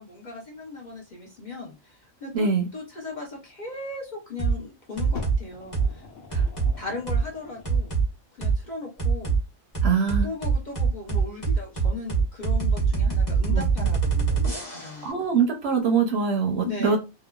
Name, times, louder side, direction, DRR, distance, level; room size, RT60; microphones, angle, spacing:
voice 1, 0.0-6.1 6.8-7.9 8.4-9.4 10.2-15.1 16.6-17.0, left 3 dB, 45° left, -2 dB, 0.7 m, -37 dB
voice 2, 2.3-2.7 6.3-6.5 9.8-10.3 13.5-13.6 15.0-17.0, right 5 dB, 65° right, 3 dB, 0.8 m, -23 dB
sound 1, 4.4-4.6 5.0-5.4 5.7-5.9 6.3-6.7 7.1-7.2 7.6-8.0 8.4-8.5 9.0-9.4 9.7-15.0, right 5 dB, 15° left, 0.9 m, -23 dB
Fire, 5.1-8.0 8.8-8.9, left 3 dB, 85° left, 1.2 m, -41 dB
2.9 x 2.2 x 2.2 m, 0.28 s
omnidirectional pair, 1.4 m